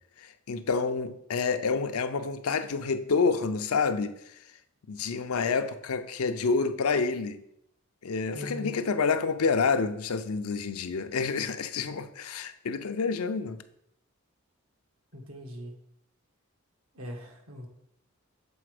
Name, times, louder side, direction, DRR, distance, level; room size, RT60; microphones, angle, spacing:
voice 1, 0.2-4.4 4.9-7.4 8.0-13.6, left 4 dB, 90° left, 0.6 m, -28 dB
voice 2, 8.3-8.7 15.1-15.8 16.9-17.7, equal, 85° right, 1.5 m, -40 dB
7.0 x 4.2 x 4.9 m
head